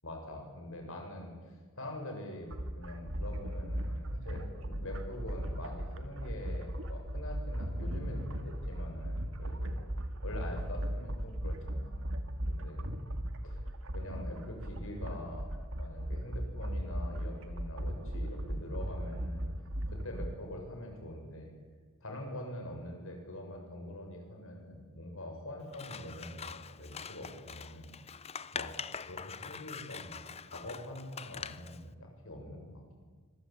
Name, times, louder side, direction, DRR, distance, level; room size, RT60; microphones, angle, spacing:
voice 1, 0.0-9.8 10.2-12.0 12.5-12.9 13.4-13.6 13.9-15.5 15.8-19.5 19.9-21.5 22.0-28.2 28.5-28.7 29.0-33.0, left 1 dB, 65° left, 3 dB, 7.0 m, -44 dB
sound 1, 2.5-20.3, equal, 65° right, 2.3 m, -37 dB
Scissors, 25.7-31.8, left 6 dB, 30° left, 0.7 m, -44 dB
25.5 x 22.5 x 8.8 m, 1.5 s
head